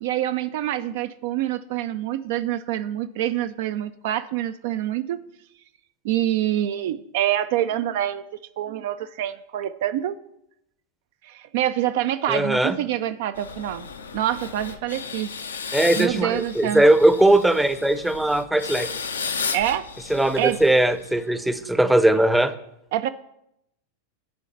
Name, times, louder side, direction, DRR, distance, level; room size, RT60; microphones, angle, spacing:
voice 1, 0.0-5.2 6.0-8.2 8.6-10.2 11.2-13.9 14.1-15.3 16.0-16.8 19.5-19.9 20.4-20.6 22.9-23.1, right 12 dB, 50° right, 11 dB, 0.3 m, -26 dB
voice 2, 12.3-12.8 15.7-18.9 20.1-22.5, right 1 dB, 5° right, 11 dB, 0.6 m, -19 dB
sound 1, 13.4-21.3, left 5 dB, 70° left, 0.6 m, -34 dB
10.0 x 3.8 x 6.9 m, 0.80 s
figure-of-eight pair, 90°, 0 cm